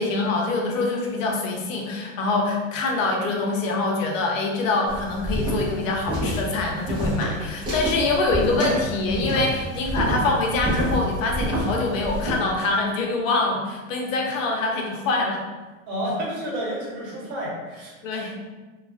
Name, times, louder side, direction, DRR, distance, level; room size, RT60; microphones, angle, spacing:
voice 1, 0.0-15.4 18.0-18.4, left 3 dB, 75° left, 1 dB, 0.7 m, -24 dB
sound 1, 4.9-12.4, equal, 10° right, 0.6 m, -28 dB
voice 2, 15.9-18.4, equal, 55° right, -3 dB, 0.9 m, -31 dB
2.3 x 2.3 x 2.3 m, 1.2 s
supercardioid pair, 150°, 39 cm